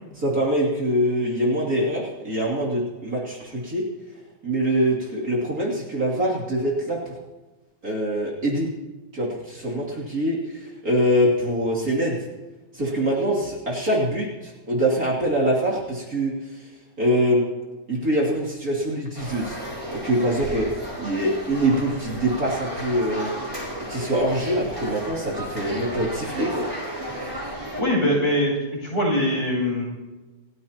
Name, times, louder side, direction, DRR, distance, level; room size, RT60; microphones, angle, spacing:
voice 1, 0.2-3.8 4.4-7.2 7.8-8.7 9.1-12.2 12.7-16.7 17.0-17.4 17.9-19.6 19.9-20.7 21.0-23.3 23.9-26.7, right 1 dB, 45° right, -5 dB, 3.3 m, -24 dB
sound 1, 19.1-27.8, equal, 10° right, 4.8 m, -33 dB
voice 2, 27.8-28.5 28.8-29.8, left 1 dB, 30° left, -3 dB, 7.7 m, -22 dB
28.0 x 15.0 x 2.9 m, 1.2 s
omnidirectional pair, 2.3 m